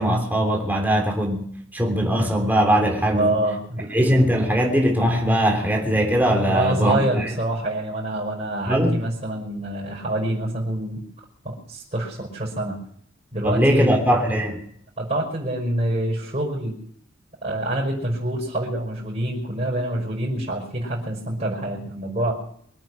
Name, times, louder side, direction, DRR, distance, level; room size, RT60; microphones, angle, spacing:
voice 1, 0.0-1.4 1.7-3.3 3.9-7.3 8.7-9.0 13.4-14.6, equal, 10° right, 3.3 m, -20 dB
voice 2, 3.1-3.9 6.5-11.0 11.4-12.7 13.3-14.0 15.0-16.8 17.4-22.3, right 1 dB, 35° right, 5.2 m, -26 dB
24.0 x 9.0 x 6.3 m
head